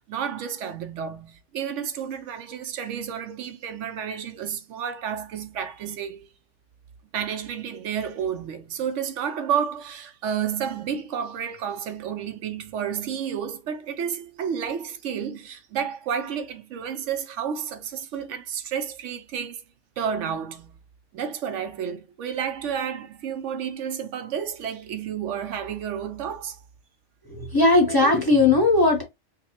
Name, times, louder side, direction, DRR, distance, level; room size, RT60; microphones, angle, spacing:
voice 1, 0.0-6.3 7.1-19.6 20.0-20.8 21.1-26.6, right 8 dB, 75° right, 0.9 m, -31 dB
voice 2, 27.3-29.0, left 2 dB, 20° left, 0.7 m, -18 dB
4.9 x 2.3 x 2.9 m
omnidirectional pair, 1.3 m